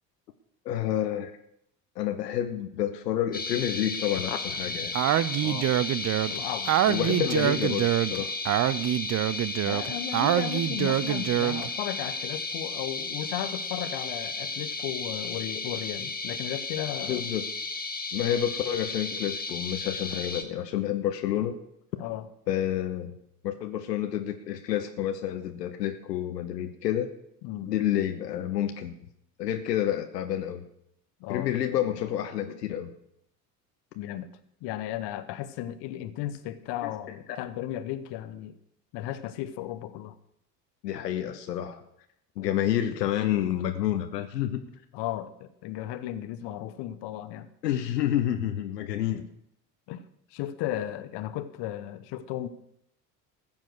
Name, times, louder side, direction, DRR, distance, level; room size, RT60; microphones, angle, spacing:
voice 1, 0.6-1.3 2.0-5.0 6.9-8.3 17.1-17.4 18.1-21.5 22.5-23.2 23.4-27.1 27.7-28.9 29.4-30.7 31.3-32.9 36.8-36.9 40.8-41.8 42.4-44.6 47.6-49.3, left 11 dB, 85° left, 7 dB, 0.9 m, -29 dB
sound 1, 3.3-20.4, left 3 dB, 20° left, 1.4 m, -34 dB
Speech, 4.9-11.7, right 13 dB, 35° right, 0.6 m, -25 dB
voice 2, 5.4-5.7 6.3-6.8 9.6-17.2 22.0-22.3 27.4-27.7 31.2-31.5 33.9-34.3 34.6-38.6 38.9-40.2 44.9-47.5 49.9-50.0 50.3-52.5, left 12 dB, 60° left, 13 dB, 1.1 m, -35 dB
14.5 x 7.4 x 6.3 m, 0.74 s
hypercardioid pair, 60°, 48 cm